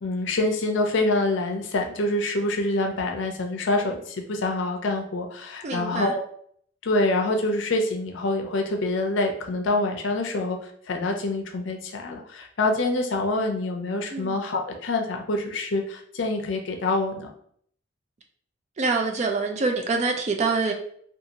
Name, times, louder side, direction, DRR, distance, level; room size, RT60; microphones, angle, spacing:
voice 1, 0.0-6.2 6.8-17.3, left 2 dB, 70° left, 3 dB, 0.5 m, -26 dB
voice 2, 5.6-6.1 14.1-14.3 18.8-20.7, right 3 dB, 35° right, 4 dB, 0.3 m, -25 dB
2.6 x 2.4 x 2.8 m, 0.63 s
head